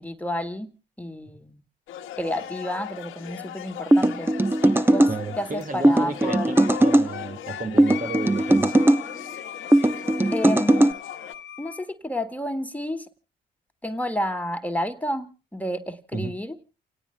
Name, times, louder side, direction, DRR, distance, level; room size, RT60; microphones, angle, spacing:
voice 1, 0.0-0.7 1.0-1.5 2.2-4.3 4.9-5.1 5.4-6.6 10.3-10.9 11.6-13.1 13.8-16.6, left 1 dB, 5° left, 1.9 m, -30 dB
sound 1, 1.9-11.3, left 11 dB, 80° left, 1.4 m, -40 dB
sound 2, 3.9-5.1 5.8-7.1 7.8-9.0 9.7-10.9, right 1 dB, 10° right, 1.0 m, -18 dB
voice 2, 5.1-8.8 16.1-16.3, right 4 dB, 40° right, 2.1 m, -33 dB
Wind instrument woodwind instrument, 6.2-11.9, left 10 dB, 60° left, 1.1 m, -38 dB
29.5 x 18.0 x 2.3 m
supercardioid pair, 60°, 21 cm